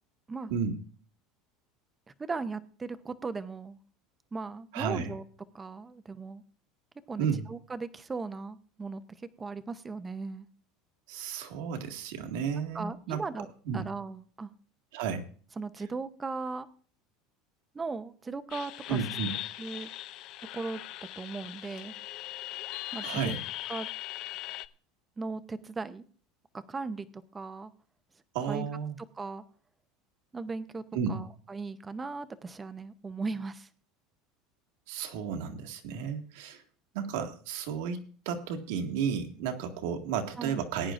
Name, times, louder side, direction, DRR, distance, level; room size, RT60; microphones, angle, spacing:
voice 1, 2.2-3.8 4.3-5.2 5.5-6.4 7.1-9.0 9.4-10.5 12.7-13.5 13.7-14.5 15.6-16.7 17.7-19.0 19.6-19.9 20.5-20.8 21.2-21.9 22.9-23.4 23.7-23.9 25.2-26.0 26.5-27.7 28.5-28.7 29.1-29.4 30.3-30.8 31.1-33.7 40.4-40.6, right 4 dB, 10° right, 13 dB, 0.6 m, -37 dB
voice 2, 4.7-5.1 7.2-7.5 11.1-13.2 13.7-13.8 14.9-15.3 18.9-19.4 23.0-23.4 28.3-29.0 30.9-31.2 34.9-36.6 36.9-40.9, right 6 dB, 75° right, 4 dB, 1.9 m, -33 dB
sound 1, 18.5-24.7, left 14 dB, 40° left, 0.5 m, -39 dB
19.5 x 10.0 x 2.5 m, 0.43 s
cardioid pair, 170°, 0 cm